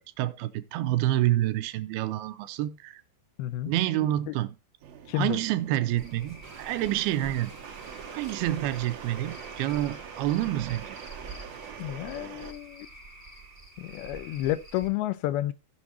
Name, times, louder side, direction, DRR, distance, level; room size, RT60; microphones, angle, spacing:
voice 1, 0.2-3.0 3.7-4.6 5.1-7.5 8.1-11.0, right 14 dB, 85° right, 2.6 m, -28 dB
voice 2, 3.4-3.7 4.3-4.4 5.1-5.4 11.8-12.9 13.8-15.5, left 14 dB, 80° left, 2.4 m, -30 dB
sound 1, 4.8-12.5, right 8 dB, 70° right, 3.1 m, -45 dB
Cricket / Frog, 6.0-14.9, right 3 dB, 15° right, 5.1 m, -46 dB
sound 2, 6.4-11.7, right 4 dB, 35° right, 1.9 m, -49 dB
16.5 x 6.2 x 2.8 m
omnidirectional pair, 4.5 m